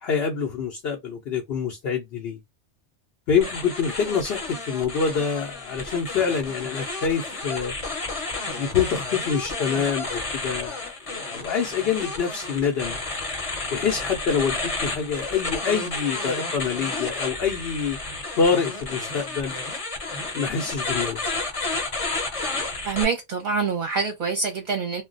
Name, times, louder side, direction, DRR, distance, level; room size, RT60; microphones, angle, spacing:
voice 1, 0.0-2.4 3.3-7.8 8.5-13.0 13.7-18.0 18.4-19.6 20.3-21.2, left 6 dB, 65° left, 0.8 m, -26 dB
sound 1, 3.4-23.0, left 3 dB, 35° left, 0.8 m, -31 dB
voice 2, 22.8-25.0, right 5 dB, 50° right, 0.7 m, -26 dB
2.2 x 2.2 x 3.8 m
omnidirectional pair, 1.2 m